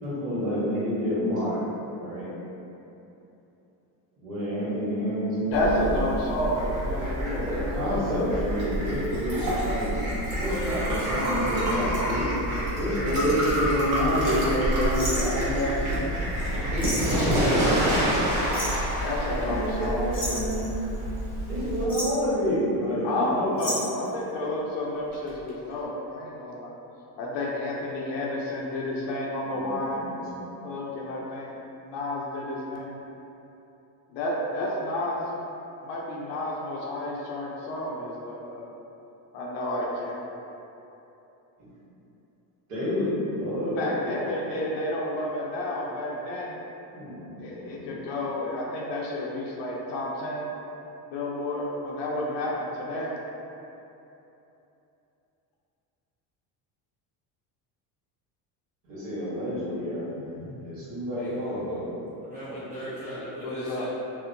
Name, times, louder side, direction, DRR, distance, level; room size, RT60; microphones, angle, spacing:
voice 1, 0.0-1.6 2.0-2.3 4.2-5.9 7.2-12.2 12.8-16.2 16.7-17.6 19.2-20.7 21.5-23.8 29.5-30.5 41.6-41.7 42.7-44.1 46.9-48.0 58.8-61.9, equal, 85° right, -11 dB, 1.3 m, -29 dB
voice 2, 5.5-7.8 19.0-20.5 23.0-26.7 27.2-30.0 30.6-31.6 31.8-33.0 34.1-35.3 35.8-38.7 39.3-40.2 43.8-46.5 47.4-50.5 51.1-53.1 63.4-63.9, left 1 dB, 60° left, -3 dB, 0.5 m, -31 dB
Fowl, 5.5-21.8, right 1 dB, 40° right, 1.0 m, -29 dB
Liquid, 8.5-18.7, right 1 dB, 60° right, 1.1 m, -31 dB
sound 1, 14.9-15.8 16.4-16.5 16.8-17.3 18.5-18.9 20.1-21.2 21.7-22.3 23.6-24.1 25.1-25.5 25.8-25.9, equal, 20° left, 0.6 m, -33 dB
voice 3, 62.2-63.9, equal, 20° right, -12 dB, 0.4 m, -38 dB
2.7 x 2.0 x 2.5 m, 3.0 s
cardioid pair, 105°, 47 cm